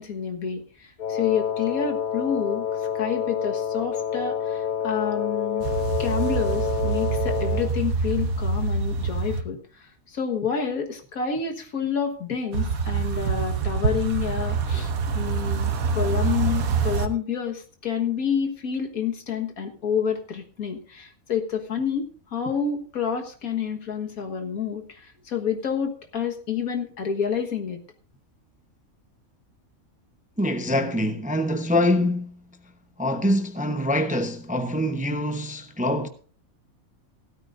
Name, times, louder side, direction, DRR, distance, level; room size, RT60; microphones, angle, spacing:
voice 1, 0.0-2.7 3.0-5.7 6.0-27.8, left 7 dB, 80° left, 2.0 m, -29 dB
Wind instrument woodwind instrument, 1.0-7.8, left 8 dB, 55° left, 0.5 m, -28 dB
sound 1, 5.6-9.4 12.5-17.1, right 5 dB, 75° right, 1.4 m, -26 dB
voice 2, 30.4-32.4 33.0-36.1, left 1 dB, 10° right, 0.6 m, -24 dB
16.0 x 13.0 x 2.6 m
omnidirectional pair, 1.5 m